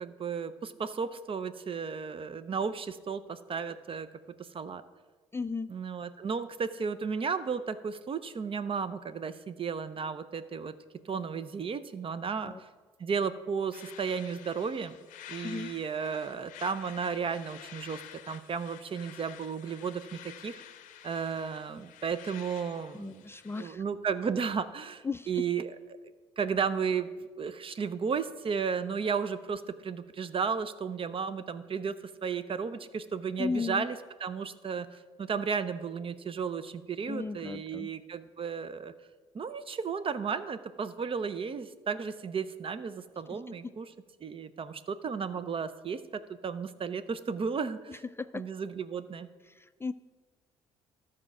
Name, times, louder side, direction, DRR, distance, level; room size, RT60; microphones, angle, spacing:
voice 1, 0.0-4.1 4.4-4.8 5.7-10.7 11.0-12.5 13.0-15.0 15.3-18.0 18.3-20.6 21.0-23.3 23.6-25.8 26.4-31.9 32.2-38.9 39.3-43.9 44.2-46.0 46.4-48.0 48.3-49.3, right 6 dB, 40° right, 13 dB, 0.6 m, -34 dB
voice 2, 5.3-5.7 12.4-12.6 15.4-15.7 22.9-23.8 25.0-25.4 33.4-33.9 37.1-37.9 43.3-43.7 47.9-48.4 49.5-49.9, left 4 dB, 20° left, 12 dB, 0.3 m, -36 dB
sound 1, 13.7-23.6, left 11 dB, 70° left, 0.6 m, -50 dB
13.0 x 4.4 x 6.1 m, 1.4 s
hypercardioid pair, 55°, 14 cm